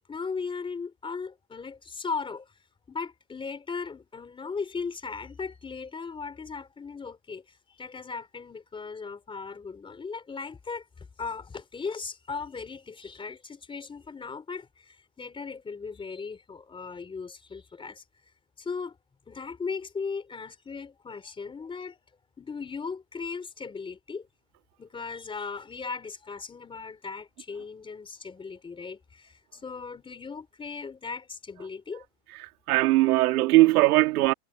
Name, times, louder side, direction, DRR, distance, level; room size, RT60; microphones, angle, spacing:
voice 1, 0.1-2.5 2.9-18.0 18.6-19.0 19.3-22.0 22.4-24.3 24.8-32.1, left 5 dB, 10° left, 3.7 m, -37 dB
voice 2, 32.4-34.3, right 19 dB, 80° right, 2.5 m, -20 dB
supercardioid pair, 165°, 44 cm